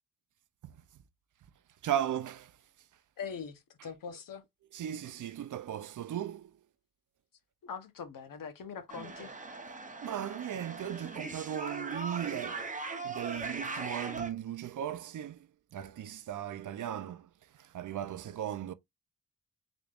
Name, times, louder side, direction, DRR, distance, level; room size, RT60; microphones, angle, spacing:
voice 1, 1.8-2.6 4.7-6.6 9.7-12.7 13.0-18.7, right 10 dB, 65° right, 0.5 m, -37 dB
voice 2, 3.2-4.4 7.6-9.3, left 6 dB, 70° left, 0.9 m, -42 dB
sound 1, 8.9-14.3, right 3 dB, 25° right, 0.8 m, -40 dB
3.9 x 3.3 x 2.4 m
wide cardioid pair, 105°, 34 cm